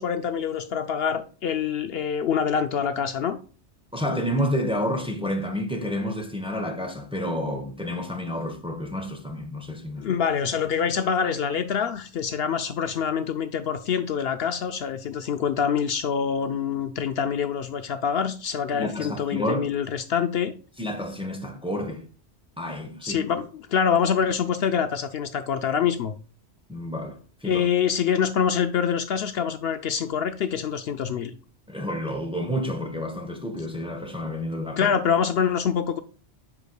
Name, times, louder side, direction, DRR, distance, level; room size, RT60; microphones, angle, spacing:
voice 1, 0.0-3.4 10.0-20.5 23.0-26.1 27.4-31.3 34.8-36.0, left 7 dB, 65° left, 0.8 m, -25 dB
voice 2, 3.9-10.1 18.7-19.7 20.8-22.0 22.6-23.2 26.7-27.6 31.7-34.9, equal, 5° right, 0.9 m, -30 dB
8.1 x 5.9 x 2.3 m
omnidirectional pair, 1.2 m